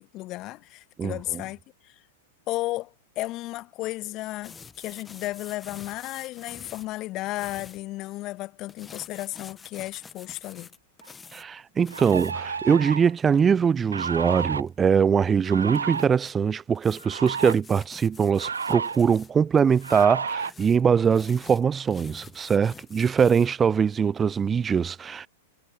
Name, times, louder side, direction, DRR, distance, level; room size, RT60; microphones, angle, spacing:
voice 1, 0.0-2.0 2.5-10.7, left 18 dB, 35° left, 1.5 m, -34 dB
sound 1, 4.4-7.8 8.7-11.5 11.8-12.3 14.7-14.8 15.7-16.3 16.8-19.3 19.6-23.5, left 5 dB, 15° left, 1.4 m, -47 dB
sound 2, 11.0-11.1 11.9-13.1 13.9-14.6 15.4-16.1 17.0-17.5 18.4-19.0 19.8-20.5, right 5 dB, 75° right, 1.1 m, -31 dB
voice 2, 11.3-25.3, right 6 dB, 20° right, 0.3 m, -22 dB
figure-of-eight pair, 95°, 0 cm